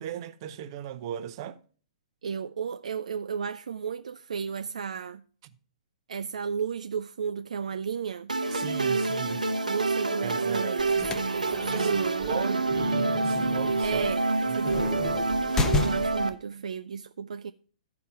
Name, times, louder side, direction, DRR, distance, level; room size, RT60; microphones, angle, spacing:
voice 1, 0.0-1.6 8.5-9.5 10.2-10.8 11.7-14.0 14.5-14.6, right 10 dB, 40° right, 0.7 m, -37 dB
voice 2, 2.2-5.2 6.1-8.3 9.7-12.4 13.8-14.3 14.5-15.2 15.8-17.5, right 6 dB, 65° right, 0.3 m, -33 dB
sound 1, 8.3-16.3, right 3 dB, 85° right, 0.8 m, -27 dB
sound 2, 10.8-16.3, left 3 dB, 15° left, 0.7 m, -33 dB
12.5 x 4.8 x 5.5 m
figure-of-eight pair, 120°, 4 cm